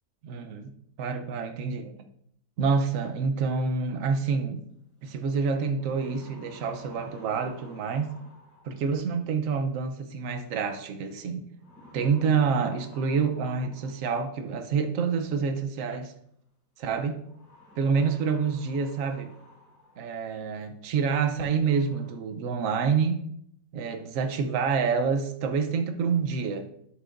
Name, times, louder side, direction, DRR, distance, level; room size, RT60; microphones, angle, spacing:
voice 1, 0.2-0.7 1.0-1.9 2.6-4.6 5.0-8.1 8.6-11.4 11.9-16.1 16.8-17.2 17.8-19.3 20.0-23.2 23.7-26.7, right 5 dB, 55° right, 6 dB, 1.0 m, -27 dB
sound 1, 5.0-5.1 5.6-9.0 10.4-10.8 11.6-14.4 15.6-15.7 17.2-20.1 20.6-20.7 21.2-21.3 21.6-22.1, left 1 dB, 45° left, 4.3 m, -52 dB
11.5 x 7.7 x 2.5 m, 0.71 s
omnidirectional pair, 2.0 m